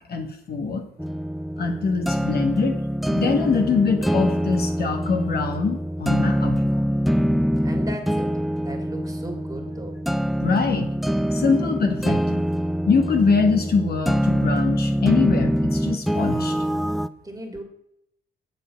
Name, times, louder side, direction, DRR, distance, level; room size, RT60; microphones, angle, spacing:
voice 1, 0.1-0.8 1.6-2.8 3.1-6.9 10.4-10.9 11.3-12.4 12.9-16.6, left 4 dB, 50° left, 5 dB, 1.3 m, -23 dB
sound 1, 1.0-17.1, equal, ahead, 0.4 m, -24 dB
voice 2, 7.6-10.0 17.2-17.6, right 1 dB, 20° right, 3 dB, 2.3 m, -37 dB
7.9 x 6.9 x 5.7 m, 0.76 s
cardioid pair, 90°, 20 cm